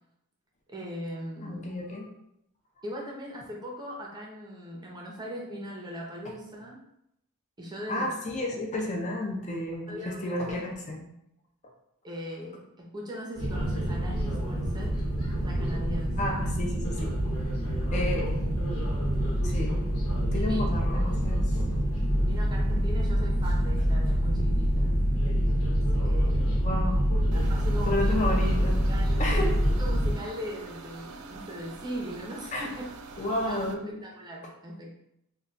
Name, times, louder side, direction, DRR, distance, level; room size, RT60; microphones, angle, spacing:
voice 1, 0.7-1.7 2.8-6.8 7.6-8.1 9.9-10.6 12.0-14.9 15.4-16.4 17.9-18.2 20.3-20.7 21.3-21.7 22.2-24.9 25.9-26.7 27.3-28.2 28.9-32.8 33.4-34.9, equal, 20° right, -1 dB, 0.5 m, -40 dB
voice 2, 1.4-2.1 7.9-11.1 16.2-17.1 17.9-18.2 19.4-19.9 20.3-21.4 21.8-22.3 26.6-27.0 27.9-28.8 29.2-29.5 32.5-32.7 33.2-34.0, left 1 dB, 30° left, 0 dB, 0.4 m, -31 dB
sound 1, 13.4-30.2, equal, 80° left, 1.0 m, -26 dB
sound 2, 27.3-33.7, right 4 dB, 85° right, 0.3 m, -45 dB
2.2 x 2.2 x 3.8 m, 0.79 s
head